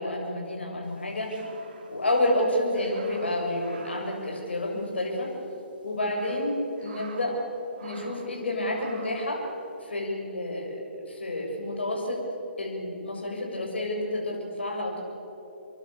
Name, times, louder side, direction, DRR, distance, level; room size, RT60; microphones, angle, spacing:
voice 1, 0.0-1.4 1.9-5.3 5.8-7.4 7.8-9.4 9.8-12.2 12.6-15.0, left 1 dB, 70° left, 0 dB, 7.3 m, -29 dB
sound 1, 0.9-5.0 5.3-5.4 5.9-7.5 7.7-8.3 8.7-9.3, right 4 dB, 50° right, 3.5 m, -48 dB
28.5 x 23.0 x 7.6 m, 3.0 s
figure-of-eight pair, 130°, 6 cm